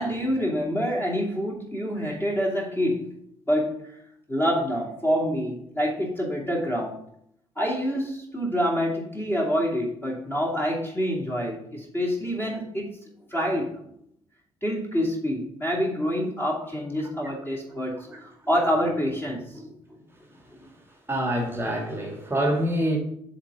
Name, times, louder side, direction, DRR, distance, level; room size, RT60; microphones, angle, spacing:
voice 1, 0.0-3.2 3.5-3.9 4.3-7.0 7.6-12.9 13.3-13.8 14.6-19.7, equal, 15° left, 2.7 m, -27 dB
voice 2, 21.1-23.0, right 1 dB, 15° right, 1.7 m, -25 dB
7.4 x 3.9 x 6.7 m
figure-of-eight pair, 45°, 15 cm